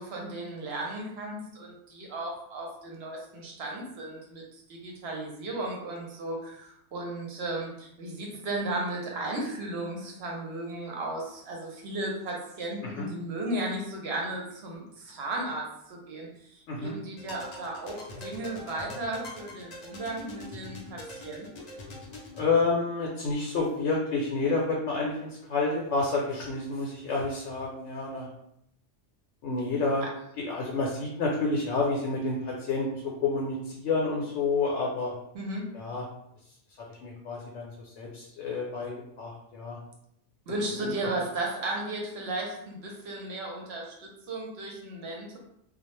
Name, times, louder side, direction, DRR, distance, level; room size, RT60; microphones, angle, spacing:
voice 1, 0.0-21.7 30.0-30.1 35.3-35.7 40.5-45.4, right 2 dB, 65° right, -1 dB, 0.8 m, -35 dB
sound 1, 17.1-22.5, left 1 dB, 60° left, 0.4 m, -43 dB
voice 2, 22.4-28.3 29.4-30.0 30.4-35.1 35.7-36.1 37.0-39.8 40.8-41.1, left 3 dB, 75° left, -3 dB, 0.9 m, -29 dB
2.2 x 2.0 x 3.0 m, 0.75 s
omnidirectional pair, 1.3 m